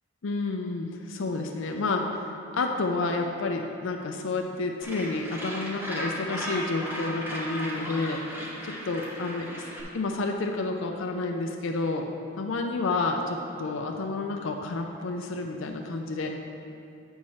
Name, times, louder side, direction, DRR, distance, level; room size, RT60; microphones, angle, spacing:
voice 1, 0.2-9.7 9.9-12.1 12.4-16.4, left 3 dB, 60° left, 3 dB, 0.5 m, -30 dB
Gull seagull, 4.8-9.8, equal, 10° right, 1.0 m, -36 dB
8.5 x 4.7 x 5.5 m, 2.7 s
head